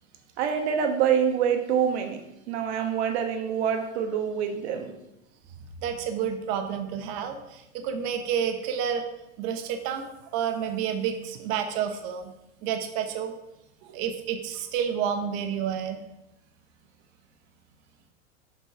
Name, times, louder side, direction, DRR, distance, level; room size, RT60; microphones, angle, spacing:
voice 1, 0.4-4.9, right 8 dB, 60° right, 5 dB, 1.3 m, -26 dB
voice 2, 5.8-9.0 9.4-10.0 10.3-12.3 12.6-13.3 13.8-16.0, right 8 dB, 40° right, 6 dB, 1.0 m, -29 dB
7.2 x 5.3 x 4.9 m, 0.89 s
supercardioid pair, 150°, 37 cm